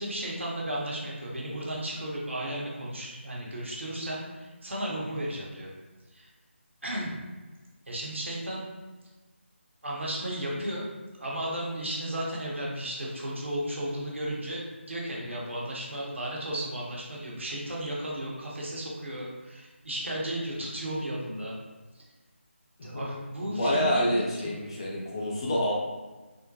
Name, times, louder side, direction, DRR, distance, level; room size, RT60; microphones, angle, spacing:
voice 1, 0.0-5.7 6.1-6.3 6.8-7.1 7.9-8.7 9.8-10.9 11.2-21.6 22.8-24.0 24.4-24.5, right 1 dB, 65° right, -4 dB, 1.0 m, -34 dB
voice 2, 23.5-25.7, equal, 25° left, -4 dB, 0.4 m, -27 dB
3.6 x 2.1 x 2.7 m, 1.2 s
figure-of-eight pair, 160°, 7 cm